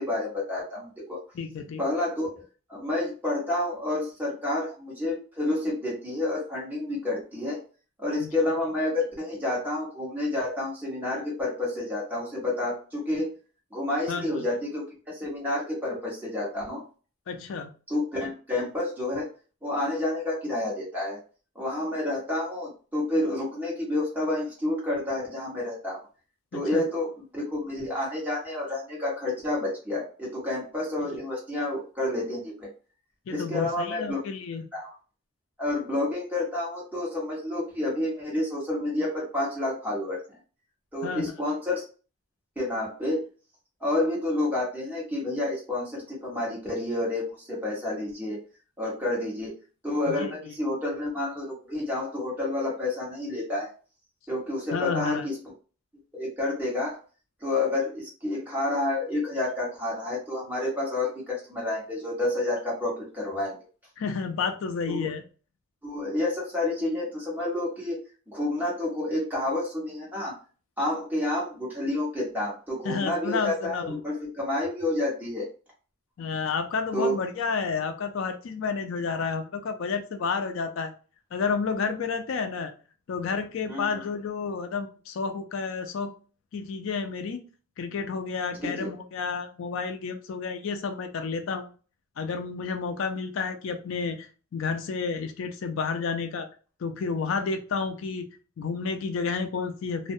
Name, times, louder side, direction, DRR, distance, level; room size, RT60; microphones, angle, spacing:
voice 1, 0.0-1.2 1.8-2.4 2.7-7.6 8.0-13.3 13.7-16.8 17.9-19.3 19.6-21.2 21.5-26.0 26.5-32.7 33.3-34.2 34.7-34.9 35.6-40.4 40.9-41.8 42.6-43.2 43.8-48.4 48.8-49.5 49.8-53.7 54.3-55.4 56.1-56.9 57.4-63.6 64.9-65.1 65.8-68.0 68.3-70.3 70.8-75.5 76.9-77.1 83.7-84.0 88.6-88.9, left 2 dB, 10° right, -5 dB, 1.1 m, -29 dB
voice 2, 1.3-1.8 8.2-8.3 14.1-14.4 17.3-17.7 26.5-26.8 33.3-34.7 41.0-41.3 50.1-50.3 54.7-55.3 64.0-65.2 72.8-74.0 76.2-80.9 81.3-82.7 83.1-86.1 86.5-87.4 87.8-91.7 92.2-96.5 96.8-98.3 98.6-100.1, left 5 dB, 70° left, 6 dB, 0.4 m, -31 dB
2.3 x 2.1 x 2.5 m, 0.37 s
head